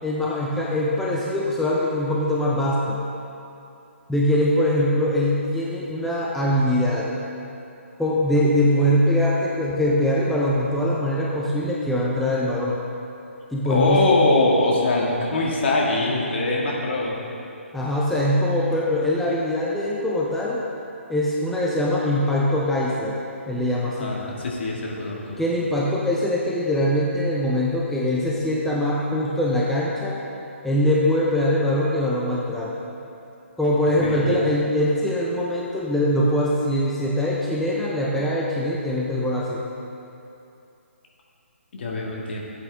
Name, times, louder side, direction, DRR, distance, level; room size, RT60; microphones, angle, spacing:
voice 1, 0.0-3.0 4.1-7.2 8.0-12.8 13.5-14.1 17.7-20.6 21.1-23.2 23.5-24.2 25.4-30.2 30.6-32.7 33.6-39.6, left 1 dB, 5° left, -5 dB, 0.7 m, -22 dB
voice 2, 13.7-17.2 23.8-25.4 34.0-34.4 41.7-42.4, left 2 dB, 55° left, -3 dB, 2.0 m, -22 dB
13.5 x 8.2 x 3.6 m, 2.8 s
figure-of-eight pair, 140°, 7 cm